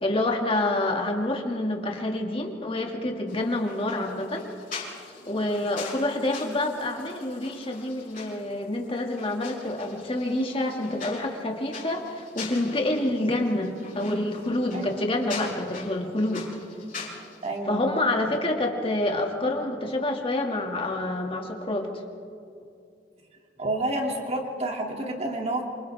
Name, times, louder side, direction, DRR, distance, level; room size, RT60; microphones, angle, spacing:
voice 1, 0.0-4.5 5.3-16.4 17.7-22.0, left 1 dB, 30° left, 1 dB, 2.4 m, -27 dB
sound 1, 3.3-17.6, left 4 dB, 50° left, 6.3 m, -43 dB
voice 2, 17.4-17.8 18.3-18.4 23.6-25.6, right 1 dB, 35° right, 0 dB, 2.9 m, -29 dB
28.5 x 26.5 x 3.7 m, 2.5 s
head